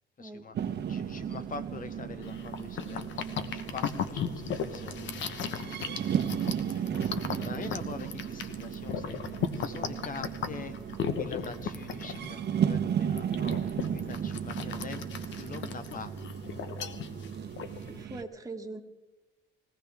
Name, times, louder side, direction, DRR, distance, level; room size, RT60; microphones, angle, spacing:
voice 1, 0.2-6.0 6.4-10.8 11.2-16.1, left 5 dB, 45° left, 12 dB, 0.8 m, -45 dB
sound 1, 0.5-18.2, right 8 dB, 60° right, 0.9 m, -35 dB
sound 2, 2.2-18.0, left 7 dB, 70° left, 1.1 m, -37 dB
voice 2, 17.9-18.8, right 3 dB, 15° right, 4 dB, 1.7 m, -42 dB
21.0 x 16.5 x 3.5 m, 1.1 s
cardioid pair, 90°, 20 cm